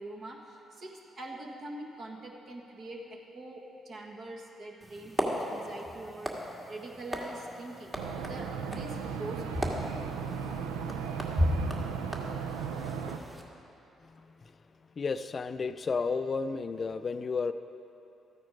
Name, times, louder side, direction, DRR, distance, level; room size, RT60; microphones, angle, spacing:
voice 1, 0.0-7.9 8.2-9.6, right 2 dB, 55° right, 0 dB, 1.7 m, -44 dB
sound 1, 4.8-13.4, equal, 25° right, 1.9 m, -36 dB
sound 2, 8.0-13.2, right 6 dB, 85° right, 0.5 m, -36 dB
voice 2, 14.0-14.5 15.0-17.5, left 4 dB, 45° left, 11 dB, 0.4 m, -32 dB
13.5 x 9.0 x 4.9 m, 2.9 s
hypercardioid pair, 45°, 0 cm